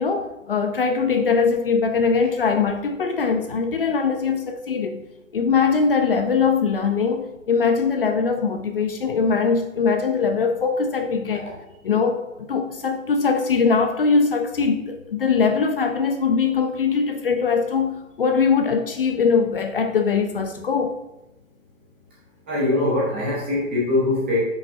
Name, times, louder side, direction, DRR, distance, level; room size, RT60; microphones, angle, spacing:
voice 1, 0.0-5.0 5.3-11.5 11.8-12.2 12.5-21.0, left 5 dB, 45° left, 6 dB, 0.5 m, -21 dB
voice 2, 22.5-24.4, left 2 dB, 10° right, -8 dB, 0.6 m, -22 dB
6.5 x 5.4 x 2.7 m, 0.92 s
hypercardioid pair, 160°, 40 cm